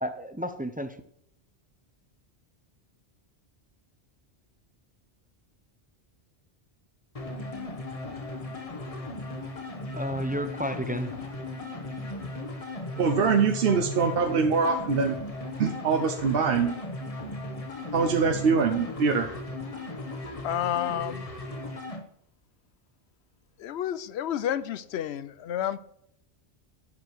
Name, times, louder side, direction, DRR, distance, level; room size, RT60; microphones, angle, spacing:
voice 1, 0.0-1.0 9.9-11.1, equal, 15° right, 0.4 m, -31 dB
sound 1, 7.2-22.0, left 2 dB, 35° left, 1.1 m, -37 dB
voice 2, 13.0-15.2 15.6-16.7 17.9-19.3, right 5 dB, 60° right, 0.9 m, -23 dB
voice 3, 20.4-21.3 23.6-25.8, left 10 dB, 75° left, 0.8 m, -30 dB
11.0 x 7.3 x 4.6 m
omnidirectional pair, 1.1 m